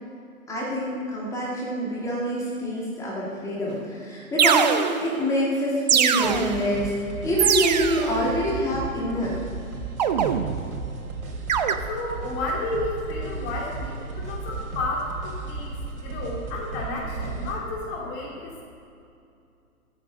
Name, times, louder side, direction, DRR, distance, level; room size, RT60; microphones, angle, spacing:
voice 1, 0.5-9.4, equal, 5° left, -6 dB, 2.5 m, -26 dB
sound 1, 3.7-3.8 4.4-5.2 5.9-6.7 7.4-8.2 10.0-10.8 11.5-11.7, right 8 dB, 30° right, 0.6 m, -22 dB
sound 2, 6.2-17.6, right 3 dB, 65° right, 3.3 m, -35 dB
voice 2, 11.9-18.6, left 2 dB, 25° left, -3 dB, 2.6 m, -32 dB
13.0 x 9.3 x 6.6 m, 2.5 s
figure-of-eight pair, 125°, 44 cm